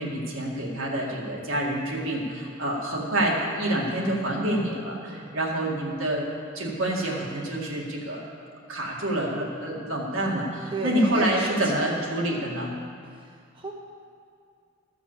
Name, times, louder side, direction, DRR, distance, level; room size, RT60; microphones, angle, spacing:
voice 1, 0.0-6.3 6.5-8.2 8.7-12.7, right 1 dB, 75° right, -2 dB, 2.2 m, -27 dB
voice 2, 10.7-11.9 13.2-13.7, right 3 dB, 25° right, -1 dB, 0.9 m, -34 dB
13.5 x 6.1 x 7.4 m, 2.2 s
head